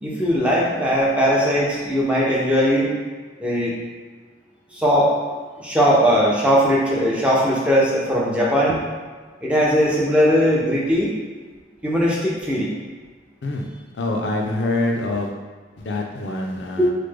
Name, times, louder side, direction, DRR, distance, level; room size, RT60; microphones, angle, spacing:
voice 1, 0.0-2.9 3.4-3.7 4.7-5.2 5.6-8.8 9.4-11.2 11.8-12.7 16.8-16.9, equal, 5° right, -5 dB, 0.5 m, -19 dB
voice 2, 13.9-15.3 15.8-16.9, left 2 dB, 70° left, 1 dB, 0.4 m, -25 dB
3.2 x 2.1 x 3.4 m, 1.5 s
head